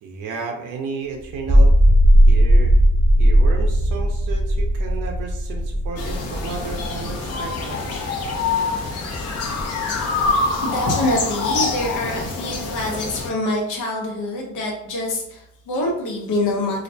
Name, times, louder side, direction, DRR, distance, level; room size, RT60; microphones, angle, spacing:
voice 1, 0.0-1.7 2.3-2.8 3.2-8.0, right 5 dB, 80° right, 2 dB, 0.5 m, -33 dB
sound 1, 1.3-7.8, equal, 15° right, 0.3 m, -16 dB
sound 2, 6.0-13.3, left 4 dB, 55° left, 0.6 m, -25 dB
voice 2, 10.6-16.8, left 1 dB, 85° left, 0 dB, 0.8 m, -25 dB
2.4 x 2.1 x 2.6 m, 0.76 s
cardioid pair, 90°, 30 cm